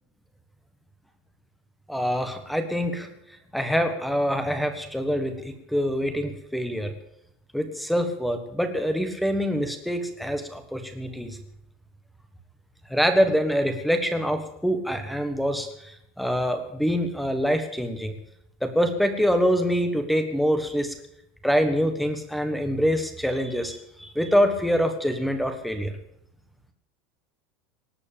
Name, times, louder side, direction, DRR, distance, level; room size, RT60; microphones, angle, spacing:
voice 1, 1.9-3.1 3.5-6.9 7.5-11.4 12.9-18.1 18.6-20.9 21.4-25.9, equal, ahead, 8 dB, 1.4 m, -25 dB
18.5 x 8.3 x 8.5 m, 0.74 s
supercardioid pair, 175°, 0 cm